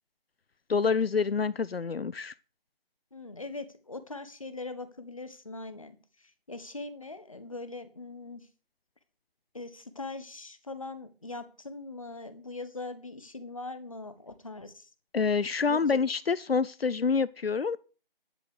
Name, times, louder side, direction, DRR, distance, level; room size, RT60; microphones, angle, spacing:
voice 1, 0.7-2.3 15.1-17.8, left 5 dB, 85° left, 0.6 m, -27 dB
voice 2, 3.1-8.5 9.5-14.9 15.6-16.0, left 3 dB, 35° left, 1.4 m, -41 dB
11.5 x 6.3 x 6.7 m
figure-of-eight pair, 170°, 29 cm